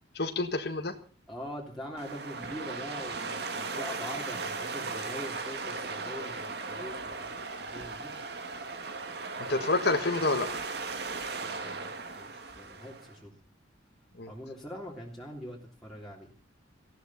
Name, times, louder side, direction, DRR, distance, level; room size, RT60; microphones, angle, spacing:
voice 1, 0.1-0.9 9.4-10.6 14.2-14.3, left 3 dB, 60° left, 5 dB, 1.6 m, -28 dB
voice 2, 1.3-8.1 11.4-13.3 14.3-16.3, equal, ahead, -5 dB, 3.2 m, -43 dB
sound 1, 2.0-13.1, right 4 dB, 60° right, 2.1 m, -37 dB
18.5 x 15.5 x 4.2 m, 0.41 s
head